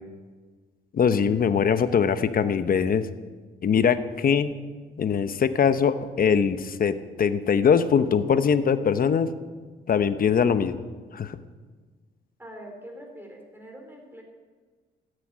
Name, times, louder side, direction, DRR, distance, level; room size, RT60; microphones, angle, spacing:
voice 1, 0.9-3.1 3.6-4.5 5.0-9.3 9.9-10.8 11.1-11.4, left 7 dB, 45° left, 11 dB, 0.9 m, -22 dB
voice 2, 12.4-14.2, equal, 10° right, 2 dB, 4.2 m, -43 dB
13.5 x 9.9 x 9.1 m, 1.4 s
cardioid pair, 90°, 20 cm